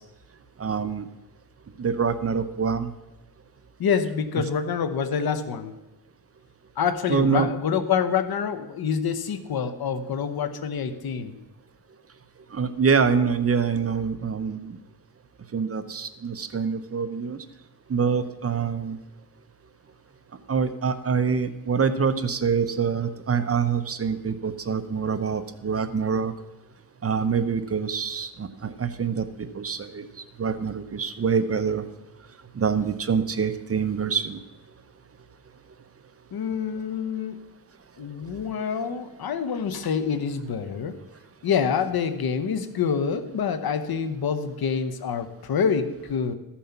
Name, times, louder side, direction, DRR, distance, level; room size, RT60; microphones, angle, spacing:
voice 1, 0.6-1.1 1.8-2.9 7.1-7.5 12.5-14.8 15.5-17.4 17.9-19.0 20.5-26.3 27.0-30.1 30.4-31.8 32.5-34.4, right 6 dB, 40° right, 10 dB, 0.9 m, -25 dB
voice 2, 3.8-5.7 6.8-11.4 36.3-37.4 38.0-40.9 41.4-46.3, left 6 dB, 70° left, 11 dB, 1.1 m, -26 dB
14.0 x 7.2 x 5.8 m, 1.1 s
cardioid pair, 100°, 38 cm